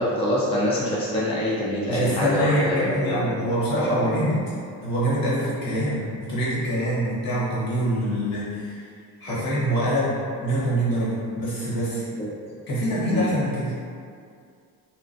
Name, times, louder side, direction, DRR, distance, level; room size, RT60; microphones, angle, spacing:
voice 1, 0.0-3.5 3.7-4.1 9.3-9.4 12.2-12.3 13.1-13.3, left 1 dB, 15° left, -6 dB, 0.4 m, -25 dB
voice 2, 1.9-4.4 4.8-8.8 9.2-12.0 12.7-13.7, equal, 55° left, -9 dB, 1.4 m, -25 dB
3.0 x 2.2 x 2.5 m, 2.3 s
supercardioid pair, 75°, 43 cm